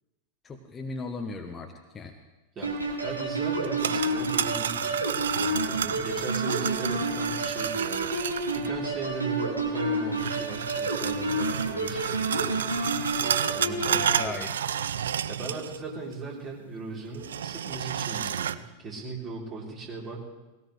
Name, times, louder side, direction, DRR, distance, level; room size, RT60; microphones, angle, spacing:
voice 1, 0.4-2.1 14.2-14.5, left 3 dB, 20° left, 4 dB, 1.1 m, -37 dB
sound 1, 2.6-14.3, right 2 dB, 80° right, 2.2 m, -30 dB
voice 2, 3.0-5.0 5.3-8.1 8.5-12.5 13.2-14.4 15.3-20.2, right 4 dB, 30° right, -4 dB, 3.7 m, -38 dB
sound 2, 3.5-8.7 10.1-15.9 16.1-16.2 17.1-18.5, right 9 dB, 65° right, 0.5 m, -31 dB
20.0 x 17.0 x 3.3 m, 1.1 s
figure-of-eight pair, 90°, 0 cm